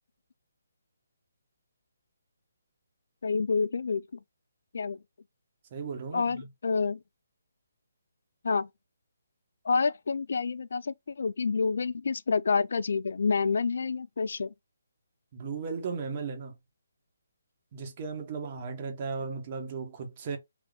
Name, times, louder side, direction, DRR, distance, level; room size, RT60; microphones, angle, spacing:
voice 1, 3.2-4.2 4.7-5.0 6.1-7.0 8.4-8.7 9.6-14.5, left 5 dB, 60° left, 0.3 m, -28 dB
voice 2, 5.7-6.5 15.3-16.5 17.7-20.4, right 5 dB, 35° right, 1.3 m, -36 dB
3.8 x 2.8 x 3.5 m
figure-of-eight pair, 140°, 0 cm